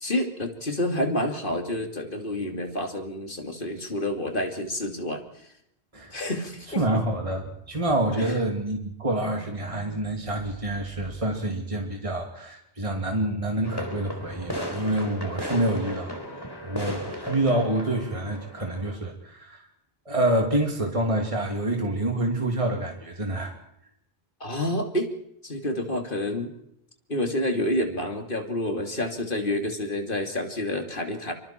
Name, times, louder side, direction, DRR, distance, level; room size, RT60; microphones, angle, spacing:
voice 1, 0.0-5.2 6.1-6.8 8.2-8.3 24.4-25.1 25.4-26.5 27.1-31.3, left 1 dB, 55° left, 4 dB, 2.9 m, -28 dB
voice 2, 6.7-19.7 20.1-23.5, right 1 dB, 35° right, 2 dB, 2.8 m, -27 dB
sound 1, 13.6-18.9, equal, 20° left, 4.0 m, -35 dB
26.5 x 25.0 x 4.5 m, 0.76 s
omnidirectional pair, 1.0 m